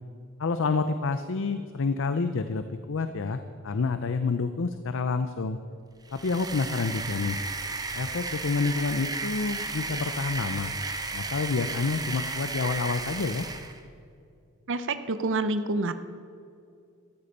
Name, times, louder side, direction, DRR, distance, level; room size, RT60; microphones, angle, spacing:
voice 1, 0.4-5.6 6.1-7.4 7.9-10.7 11.1-13.5, left 4 dB, 60° left, 10 dB, 0.6 m, -28 dB
sound 1, 6.0-13.8, right 3 dB, 20° right, 0.9 m, -34 dB
voice 2, 14.7-15.9, right 2 dB, 60° right, 11 dB, 0.7 m, -27 dB
14.0 x 13.0 x 5.4 m, 2.4 s
head